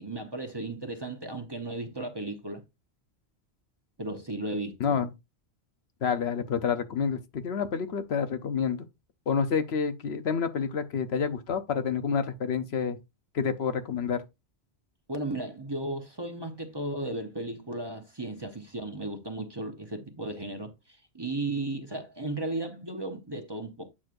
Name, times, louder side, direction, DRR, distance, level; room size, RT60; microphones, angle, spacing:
voice 1, 0.0-2.6 4.0-5.0 15.1-23.9, right 2 dB, 25° right, 0.9 m, -35 dB
voice 2, 6.0-8.8 9.3-13.0 13.3-14.2, left 6 dB, 70° left, 1.0 m, -28 dB
8.6 x 6.1 x 2.5 m
omnidirectional pair, 1.1 m